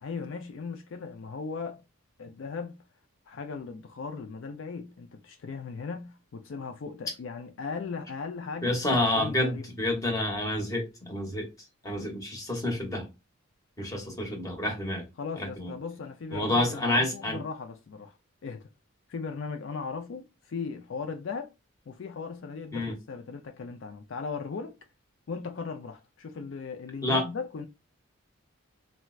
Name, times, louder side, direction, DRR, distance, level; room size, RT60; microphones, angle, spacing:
voice 1, 0.0-1.8 2.2-2.8 3.3-9.7 15.2-18.2 18.4-18.7 19.1-21.5 21.9-24.8 25.3-27.7, left 5 dB, 60° left, 0.4 m, -38 dB
voice 2, 8.6-11.5 11.8-13.1 13.8-15.0 15.4-15.7 16.3-17.4 22.7-22.9 27.0-27.2, left 1 dB, 15° left, 0.9 m, -28 dB
4.3 x 2.0 x 2.3 m
head